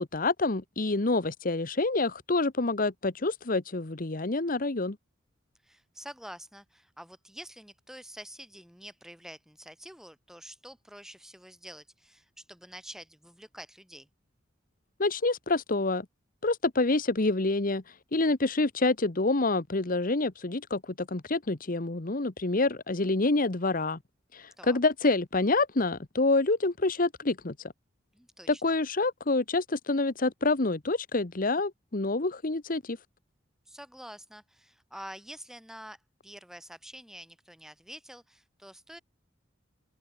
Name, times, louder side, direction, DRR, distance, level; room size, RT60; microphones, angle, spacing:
voice 1, 0.0-5.0 15.0-16.1 16.4-17.8 18.1-24.0 24.3-27.5 28.5-33.0, left 2 dB, 45° left, 1.2 m, -27 dB
voice 2, 5.6-14.1 24.6-24.8 28.1-28.7 33.7-36.0 36.2-39.0, equal, 5° right, 3.1 m, -47 dB
open air
head